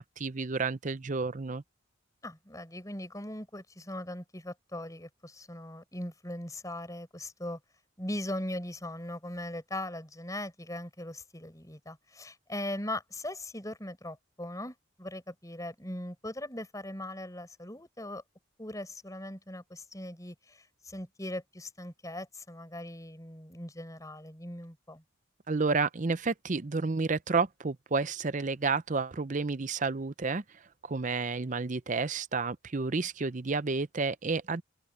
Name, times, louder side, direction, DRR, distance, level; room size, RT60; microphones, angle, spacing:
voice 1, 0.0-1.6 25.5-30.4 30.9-34.6, right 4 dB, 35° right, 0.6 m, -30 dB
voice 2, 2.2-7.6 8.0-18.2 18.6-25.0, left 1 dB, 15° left, 5.7 m, -40 dB
open air
head